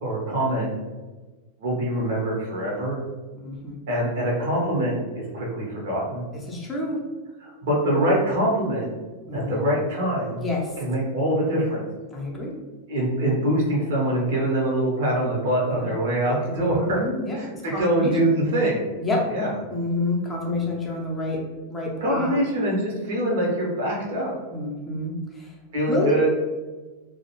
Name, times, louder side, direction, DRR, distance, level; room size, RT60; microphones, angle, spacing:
voice 1, 0.0-0.7 1.6-3.0 3.9-6.3 7.4-8.9 9.3-10.4 10.8-11.8 12.9-17.0 17.3-18.8 19.3-19.5 22.0-24.3 25.7-26.3, right 1 dB, 55° right, -3 dB, 0.7 m, -24 dB
voice 2, 3.4-3.8 6.5-7.0 9.3-9.5 10.4-10.7 12.1-12.6 15.7-15.9 16.5-18.1 18.4-18.5 19.0-19.2 19.7-21.4 21.7-22.4 24.5-25.5 25.9-26.2, left 2 dB, 15° left, -3 dB, 0.6 m, -28 dB
2.3 x 2.0 x 2.9 m, 1.3 s
figure-of-eight pair, 90°, 0 cm